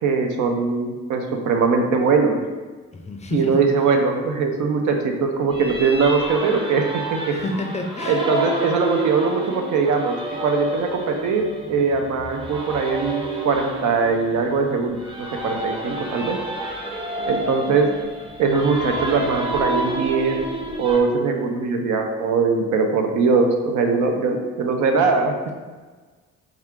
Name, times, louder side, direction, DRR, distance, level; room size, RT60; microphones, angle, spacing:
voice 1, 0.0-2.4 3.3-7.4 8.1-16.4 17.3-17.9 18.4-20.4 20.8-25.3, right 4 dB, 75° right, 4 dB, 0.6 m, -21 dB
voice 2, 2.9-3.7 7.3-8.2, left 2 dB, 25° left, 3 dB, 0.4 m, -29 dB
sound 1, 5.5-21.0, right 1 dB, 15° right, 0.7 m, -30 dB
4.2 x 2.4 x 3.5 m, 1.4 s
cardioid pair, 90°, 30 cm